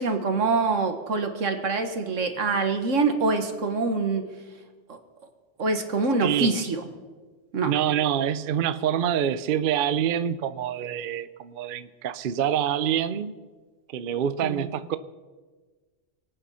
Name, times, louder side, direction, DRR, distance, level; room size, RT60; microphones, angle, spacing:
voice 1, 0.0-4.3 4.9-5.0 5.6-6.8 7.5-7.8 14.4-14.7, right 4 dB, 90° right, 1.8 m, -25 dB
voice 2, 6.2-6.5 7.6-13.3 13.9-15.0, right 9 dB, 55° right, 0.7 m, -26 dB
24.0 x 9.0 x 5.6 m
omnidirectional pair, 1.3 m